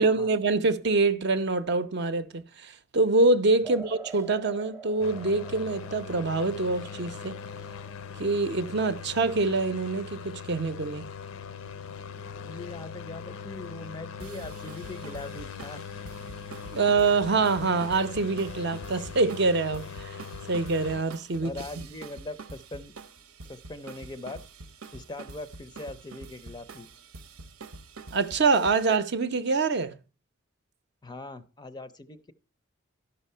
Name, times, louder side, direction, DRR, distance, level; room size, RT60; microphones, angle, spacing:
voice 1, 0.0-7.4 8.2-11.0 16.7-20.2 20.5-21.9 28.1-30.0, right 3 dB, 50° right, 0.6 m, -25 dB
sound 1, 3.6-10.7, right 4 dB, 15° right, 0.7 m, -47 dB
sound 2, 5.0-21.0, left 6 dB, 75° left, 0.5 m, -41 dB
voice 2, 12.4-15.8 21.4-22.9 23.5-24.4 24.9-26.9 31.0-32.3, left 2 dB, 20° left, 0.4 m, -41 dB
sound 3, 14.2-29.0, right 3 dB, 90° right, 0.9 m, -46 dB
12.0 x 5.5 x 5.5 m
head